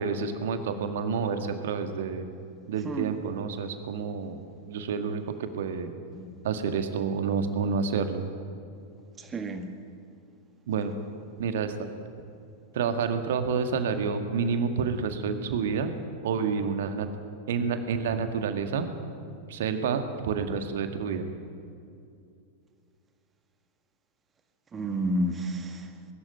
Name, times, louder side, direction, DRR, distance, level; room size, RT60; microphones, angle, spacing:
voice 1, 0.0-2.3 2.7-4.4 4.6-5.9 6.4-8.2 10.7-10.9 11.4-11.9 12.7-15.9 16.2-17.1 17.5-18.9 19.5-21.3, right 6 dB, 60° right, 8 dB, 1.9 m, -29 dB
voice 2, 9.2-9.7 24.7-25.9, right 1 dB, 20° right, 7 dB, 2.0 m, -30 dB
22.0 x 13.5 x 9.2 m, 2.5 s
figure-of-eight pair, 90°, 0 cm